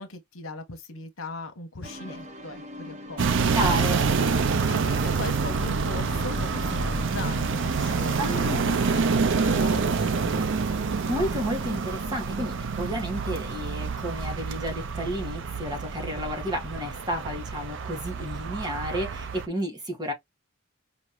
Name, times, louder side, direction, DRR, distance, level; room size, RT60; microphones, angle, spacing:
voice 1, 0.0-3.6 4.7-10.5, left 2 dB, 80° left, 1.2 m, -39 dB
sound 1, 1.8-10.7, left 1 dB, 35° right, 1.0 m, -42 dB
sound 2, 3.2-19.5, right 5 dB, 60° right, 0.6 m, -27 dB
voice 2, 3.5-4.0 8.2-8.7 11.1-20.1, equal, 20° right, 1.9 m, -31 dB
5.2 x 3.0 x 2.2 m
head